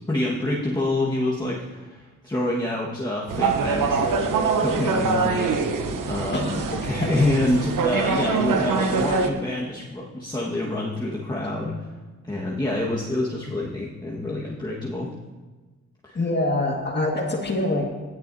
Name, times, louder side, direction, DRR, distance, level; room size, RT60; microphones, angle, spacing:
voice 1, 0.1-4.1 4.6-5.5 6.0-11.9 12.2-15.1 16.0-16.2, left 1 dB, 15° left, -5 dB, 1.6 m, -27 dB
sound 1, 3.3-9.3, right 4 dB, 85° right, 0.9 m, -24 dB
voice 2, 6.3-7.1 16.2-17.8, left 2 dB, 35° left, 0 dB, 1.9 m, -25 dB
17.0 x 10.0 x 2.8 m, 1.3 s
cardioid pair, 80°, 31 cm